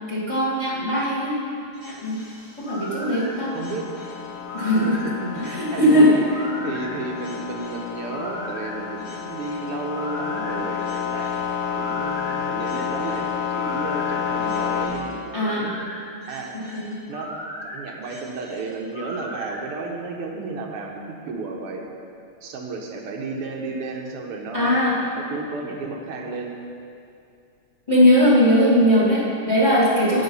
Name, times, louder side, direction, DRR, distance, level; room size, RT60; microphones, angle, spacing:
voice 1, 0.1-1.5 1.8-2.2 2.6-3.6 4.5-4.9 5.3-6.1 15.3-15.7 16.5-17.0 24.5-25.0 27.9-30.2, equal, 15° left, -6 dB, 2.0 m, -19 dB
sound 1, 1.7-19.6, equal, 85° left, 4.1 m, -38 dB
sound 2, 2.0-14.9, left 8 dB, 55° left, 3.6 m, -30 dB
voice 2, 3.5-3.9 4.6-11.3 11.8-15.7 16.3-16.5 17.1-17.4 17.7-21.9 22.4-24.8 25.2-26.5, right 3 dB, 85° right, 0 dB, 2.0 m, -33 dB
11.0 x 8.6 x 5.5 m, 2.5 s
omnidirectional pair, 2.4 m